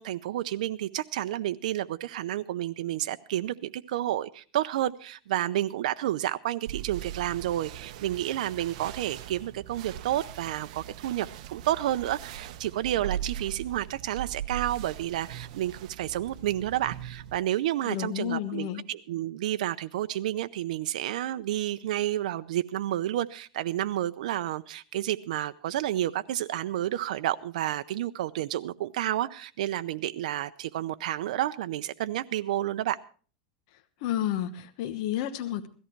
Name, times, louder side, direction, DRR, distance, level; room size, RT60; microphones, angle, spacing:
voice 1, 0.0-33.0, right 13 dB, 85° right, 11 dB, 0.6 m, -30 dB
sound 1, 6.7-17.4, right 11 dB, 70° right, 1.0 m, -40 dB
voice 2, 17.8-18.8 33.7-35.7, left 11 dB, 60° left, 7 dB, 1.1 m, -31 dB
17.0 x 14.0 x 4.5 m, 0.40 s
supercardioid pair, 150°, 4 cm